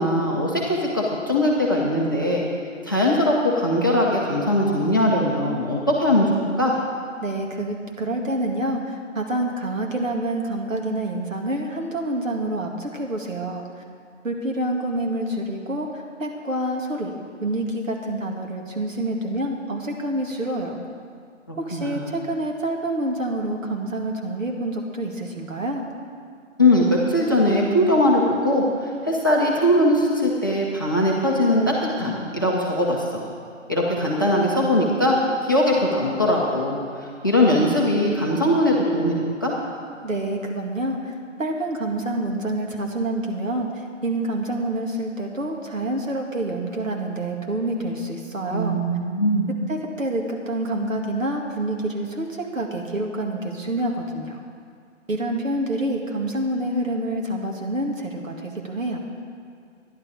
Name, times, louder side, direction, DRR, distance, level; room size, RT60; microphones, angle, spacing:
voice 1, 0.0-2.4 2.8-6.7 21.5-22.1 26.6-33.2 33.7-35.2 35.4-39.1 39.4-39.5 48.5-49.5, left 1 dB, 15° left, -3 dB, 0.7 m, -21 dB
voice 2, 7.2-13.8 14.2-17.1 17.4-20.8 21.6-25.8 40.0-48.8 49.7-54.4 55.1-59.0, right 1 dB, 85° right, 1 dB, 2.2 m, -27 dB
12.0 x 11.0 x 5.0 m, 2.2 s
hypercardioid pair, 175°, 38 cm